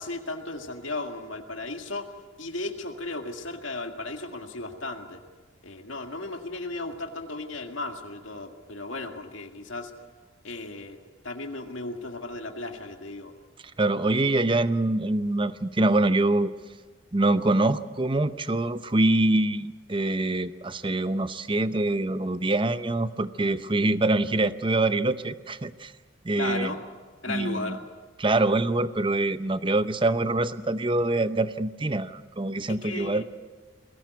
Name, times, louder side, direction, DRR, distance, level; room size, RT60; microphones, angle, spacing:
voice 1, 0.0-2.1 2.4-5.2 5.6-9.9 10.4-11.0 11.2-13.3 14.2-14.3 26.4-26.8 27.2-27.8 32.8-33.2, left 2 dB, 75° left, 4 dB, 2.0 m, -35 dB
voice 2, 13.8-16.5 17.1-25.9 26.2-26.7 27.3-27.7 28.2-33.2, right 2 dB, 25° right, 13 dB, 0.7 m, -25 dB
22.5 x 16.5 x 9.3 m, 1.4 s
head